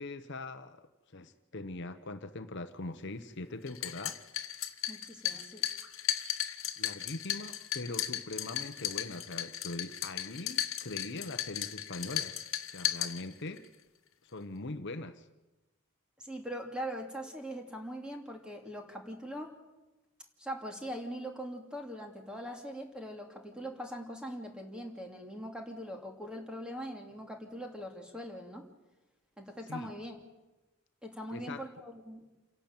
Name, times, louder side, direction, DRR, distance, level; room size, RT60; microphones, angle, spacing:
voice 1, 0.0-4.2 5.3-5.4 6.8-12.4 12.7-13.6 14.2-15.3 29.7-29.9 31.3-31.6, left 2 dB, 55° left, 10 dB, 1.0 m, -42 dB
sound 1, 3.7-13.7, left 11 dB, 75° left, 1.4 m, -36 dB
voice 2, 4.9-5.6 16.2-19.5 20.4-28.6 29.4-30.2 31.0-32.2, equal, 5° right, 2 dB, 2.6 m, -41 dB
28.5 x 11.5 x 8.9 m, 1.1 s
head